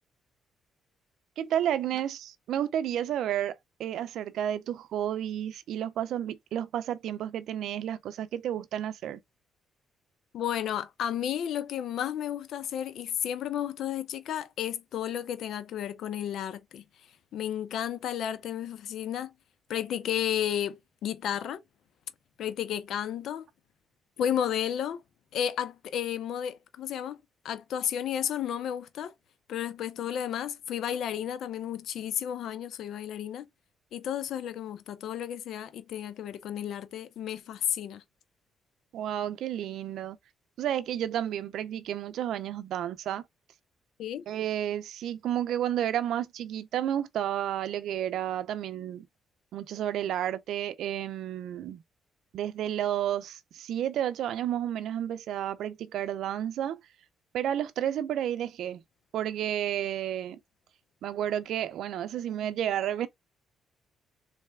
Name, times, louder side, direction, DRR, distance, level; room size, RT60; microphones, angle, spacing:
voice 1, 1.4-9.2 38.9-40.2 40.6-43.2 44.3-49.1 49.5-51.8 52.3-56.8 57.3-58.8 59.1-60.4 61.0-63.1, right 11 dB, 75° right, 0.5 m, -31 dB
voice 2, 10.3-16.8 17.3-19.3 19.7-21.6 22.4-23.5 24.2-25.0 25.3-27.2 27.4-29.1 29.5-33.5 33.9-38.0 44.0-44.3, left 10 dB, 75° left, 0.7 m, -32 dB
4.0 x 3.3 x 3.2 m
cardioid pair, 90°, 0 cm